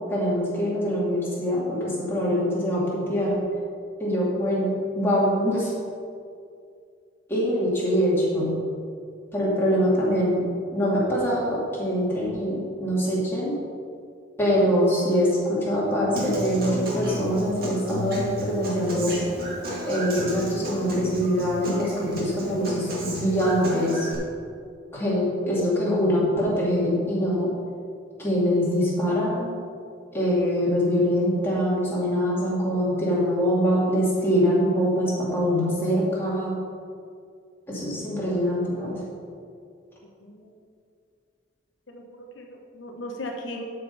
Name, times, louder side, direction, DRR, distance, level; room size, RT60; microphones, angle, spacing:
voice 1, 0.1-3.4 4.0-5.7 7.3-8.5 9.3-10.4 10.7-13.5 14.4-19.2 19.9-24.1 24.9-27.5 28.2-29.6 30.1-36.6 37.7-39.0, equal, 10° left, -7 dB, 2.6 m, -24 dB
Human voice / Acoustic guitar, 16.1-24.1, equal, 50° right, 2.4 m, -33 dB
voice 2, 40.2-40.5 41.9-43.6, left 1 dB, 75° left, 1 dB, 1.1 m, -37 dB
12.5 x 5.2 x 5.5 m, 2.3 s
head